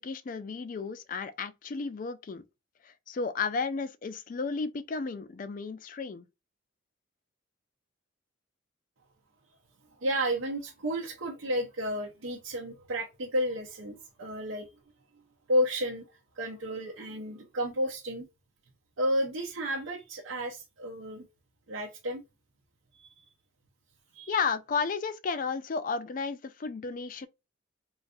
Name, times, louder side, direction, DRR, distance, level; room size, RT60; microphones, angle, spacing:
voice 1, 0.0-2.4 2.8-6.3 24.3-27.3, left 5 dB, 40° left, 0.4 m, -33 dB
voice 2, 10.0-14.7 15.5-16.0 16.4-18.3 19.0-21.2 21.7-22.2 23.0-23.2 24.1-24.3, equal, 80° right, 0.7 m, -32 dB
3.9 x 2.5 x 2.3 m
head